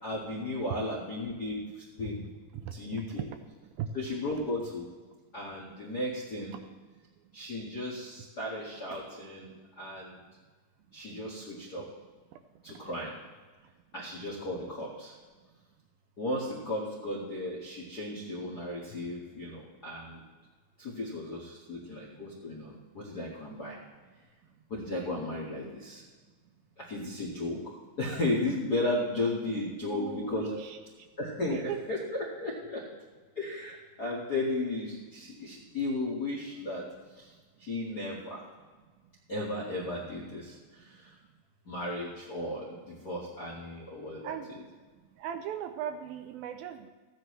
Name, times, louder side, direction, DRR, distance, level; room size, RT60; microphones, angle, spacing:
voice 1, 0.0-1.6 2.0-2.2 2.7-3.3 3.9-4.9 5.3-6.5 7.3-10.2 10.9-11.9 12.6-13.2 13.9-15.1 16.2-20.2 20.8-23.8 24.7-26.0 26.8-27.6 28.0-30.6 31.2-32.8 33.3-36.8 37.1-37.3 37.6-38.4 39.3-41.1 41.6-44.6, left 2 dB, 55° left, -5 dB, 1.1 m, -35 dB
voice 2, 2.6-3.2 3.8-3.9 29.8-30.8 31.5-31.8 44.2-44.6 45.2-46.9, right 10 dB, 80° right, 7 dB, 2.3 m, -38 dB
14.5 x 10.0 x 3.2 m, 1.4 s
omnidirectional pair, 4.4 m